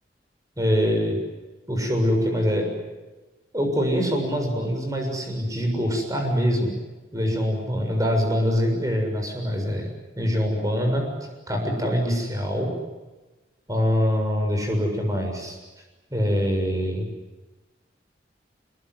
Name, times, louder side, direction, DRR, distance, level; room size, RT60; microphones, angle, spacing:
voice 1, 0.6-1.2 1.7-2.7 3.5-6.7 7.1-9.9 10.2-11.1 11.5-12.7 13.7-15.6 16.1-17.1, equal, 20° right, 3 dB, 7.1 m, -24 dB
25.5 x 23.0 x 9.5 m, 1.1 s
head